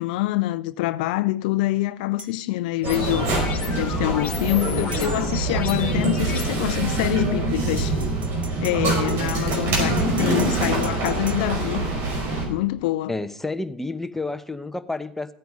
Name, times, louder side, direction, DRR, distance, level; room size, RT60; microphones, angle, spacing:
voice 1, 0.0-3.3 3.7-8.0 8.6-11.9 12.5-13.1, left 17 dB, 70° left, 0.5 m, -25 dB
sound 1, 2.2-2.3 4.9-5.1 7.8-11.4, right 3 dB, 25° right, 1.8 m, -40 dB
sound 2, 2.8-6.4, left 6 dB, 30° left, 2.2 m, -33 dB
sound 3, 2.8-12.4, right 2 dB, 55° right, 5.3 m, -24 dB
voice 2, 13.1-15.3, left 2 dB, 5° left, 1.0 m, -30 dB
15.0 x 9.3 x 5.3 m
hypercardioid pair, 80°, 5 cm